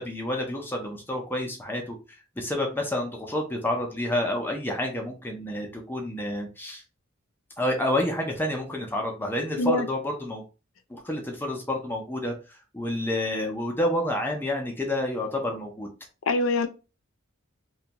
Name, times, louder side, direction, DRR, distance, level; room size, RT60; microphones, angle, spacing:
voice 1, 0.0-2.0 2.4-6.8 7.6-10.4 10.9-15.9, left 1 dB, 10° left, 0.5 m, -29 dB
voice 2, 16.3-16.7, left 2 dB, 70° left, 0.4 m, -23 dB
2.5 x 2.2 x 2.8 m
head